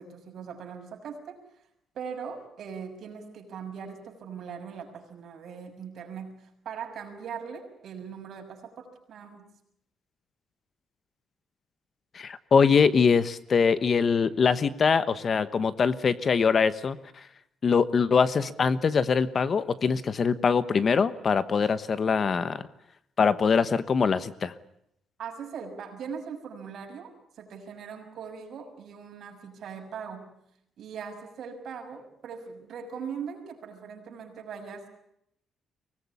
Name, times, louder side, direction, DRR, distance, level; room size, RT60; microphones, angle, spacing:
voice 1, 0.0-1.4 1.9-9.5 25.2-30.3 30.8-34.9, right 6 dB, 55° right, 3 dB, 6.4 m, -40 dB
voice 2, 12.1-17.0 17.6-22.6 23.2-24.5, left 5 dB, 35° left, 14 dB, 1.1 m, -23 dB
24.0 x 19.5 x 9.8 m, 0.76 s
cardioid pair, 145°, 0 cm